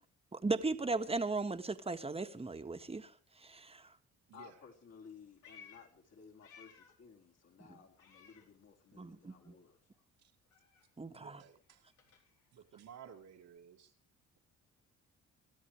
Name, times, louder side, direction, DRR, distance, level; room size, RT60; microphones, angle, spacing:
voice 1, 0.3-3.9 7.7-7.8 8.9-9.5 11.0-11.4, right 3 dB, 20° right, 1.7 m, -37 dB
voice 2, 4.3-9.8, left 6 dB, 55° left, 4.7 m, -57 dB
Meow, 5.0-7.1 7.4-9.1 9.4-13.6, left 6 dB, 80° left, 4.2 m, -62 dB
voice 3, 11.1-11.8 12.5-13.9, right 8 dB, 75° right, 2.2 m, -55 dB
26.5 x 13.0 x 3.3 m
cardioid pair, 90°, 30 cm